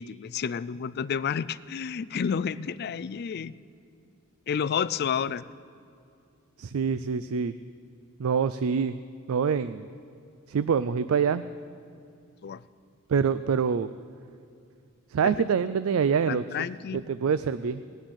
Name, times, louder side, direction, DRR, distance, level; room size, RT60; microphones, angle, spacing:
voice 1, 0.0-3.6 4.5-5.5 12.4-12.6 15.2-15.3 16.3-17.0, left 7 dB, 45° left, 17 dB, 0.3 m, -30 dB
voice 2, 6.6-7.5 8.2-9.0 9.3-9.9 10.5-11.4 13.1-13.9 15.1-16.4 16.9-17.8, right 6 dB, 65° right, 14 dB, 0.4 m, -25 dB
18.5 x 6.2 x 9.9 m, 2.6 s
head